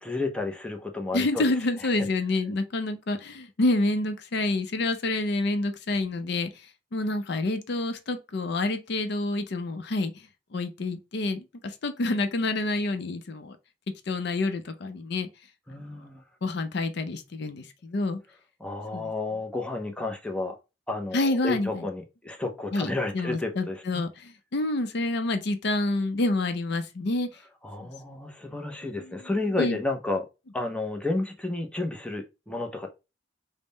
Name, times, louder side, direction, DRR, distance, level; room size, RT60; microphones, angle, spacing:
voice 1, 0.0-1.4 2.0-2.1 15.7-16.2 18.6-20.6 20.9-23.8 27.6-30.3 30.5-32.9, left 2 dB, 5° left, 0.5 m, -31 dB
voice 2, 1.1-13.6 14.1-15.3 15.7-15.8 16.4-18.2 18.9-19.1 21.1-21.9 22.7-27.3 27.8-27.9 29.0-29.2 29.6-29.8, left 2 dB, 65° left, 0.5 m, -28 dB
3.6 x 2.1 x 3.8 m
head